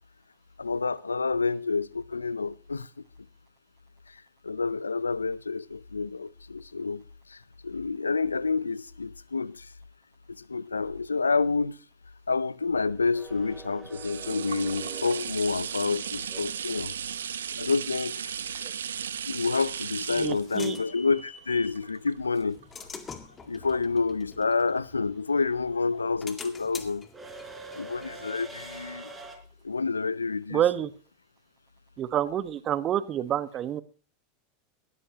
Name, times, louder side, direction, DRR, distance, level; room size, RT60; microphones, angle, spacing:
voice 1, 0.6-2.9 4.1-9.7 10.4-11.8 12.3-16.9 17.6-18.4 19.3-22.6 23.4-27.1 27.8-29.1 29.6-30.6, left 4 dB, 90° left, 0.5 m, -29 dB
sound 1, 13.0-22.6 23.2-23.3, right 8 dB, 80° right, 1.0 m, -36 dB
sound 2, 13.1-17.2 19.6-19.7 21.0-21.3 21.6-29.4, right 2 dB, 15° right, 4.3 m, -46 dB
sound 3, 20.2-21.8 22.4-25.5 25.9-29.3, left 5 dB, 25° left, 2.1 m, -46 dB
voice 2, 20.2-20.8 30.5-30.9 32.0-33.8, right 11 dB, 35° right, 1.3 m, -28 dB
18.5 x 14.0 x 2.9 m
hypercardioid pair, 90°, 0 cm